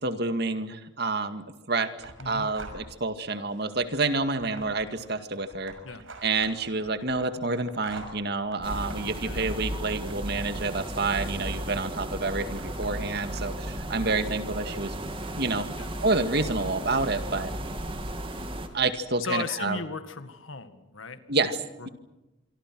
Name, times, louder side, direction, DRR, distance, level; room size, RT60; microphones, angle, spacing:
voice 1, 0.0-5.7 6.2-15.0 15.4-15.7 16.0-17.5 18.7-19.8 21.3-21.6, right 3 dB, 55° right, 9 dB, 2.1 m, -28 dB
sound 1, 2.0-3.1 3.5-11.9 12.4-13.4, right 2 dB, 80° right, 6.0 m, -47 dB
voice 2, 2.2-2.5 5.8-6.0 9.2-9.4 15.8-15.9 19.2-21.9, left 3 dB, 80° left, 10 dB, 2.0 m, -36 dB
sound 2, 8.6-18.7, right 1 dB, 25° right, 2.5 m, -35 dB
26.5 x 24.5 x 6.2 m, 1.0 s
head